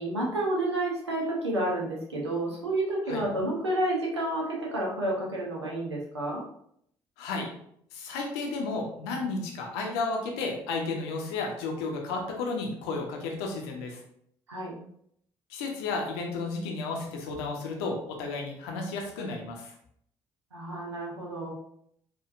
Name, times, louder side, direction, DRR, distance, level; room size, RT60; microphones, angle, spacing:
voice 1, 0.0-6.4 14.5-14.7 20.5-21.5, right 1 dB, 90° right, -3 dB, 0.7 m, -30 dB
voice 2, 7.9-14.0 15.5-19.7, left 3 dB, 75° left, 1 dB, 0.7 m, -33 dB
4.4 x 2.4 x 2.4 m, 0.69 s
figure-of-eight pair, 45°, 14 cm